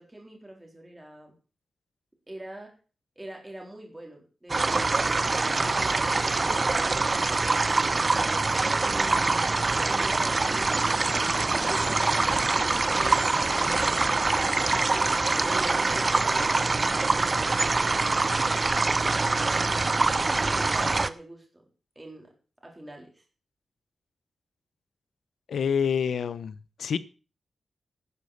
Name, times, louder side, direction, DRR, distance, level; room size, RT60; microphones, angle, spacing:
voice 1, 0.0-1.3 2.3-2.7 3.2-8.2 8.8-9.6 9.9-11.0 11.5-19.5 20.3-21.6 22.0-22.3 22.6-23.2, right 1 dB, 10° right, 1 dB, 3.9 m, -45 dB
sound 1, 4.5-21.1, right 3 dB, 30° right, 0.7 m, -24 dB
voice 2, 25.5-27.0, left 7 dB, 90° left, 16 dB, 0.9 m, -27 dB
11.5 x 9.8 x 6.7 m, 0.36 s
wide cardioid pair, 160°, 0 cm